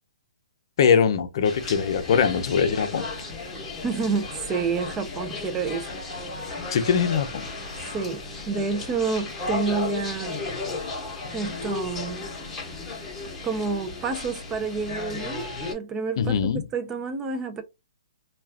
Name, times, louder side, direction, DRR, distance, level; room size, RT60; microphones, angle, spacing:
voice 1, 0.8-3.1 6.7-7.5 16.2-16.6, left 7 dB, 50° left, 0.6 m, -22 dB
sound 1, 1.4-15.7, left 3 dB, 10° left, 1.1 m, -34 dB
voice 2, 3.8-5.9 7.9-10.4 11.3-12.3 13.4-16.3 16.7-17.6, right 4 dB, 15° right, 0.5 m, -29 dB
2.3 x 2.3 x 3.4 m
hypercardioid pair, 160°, 3 cm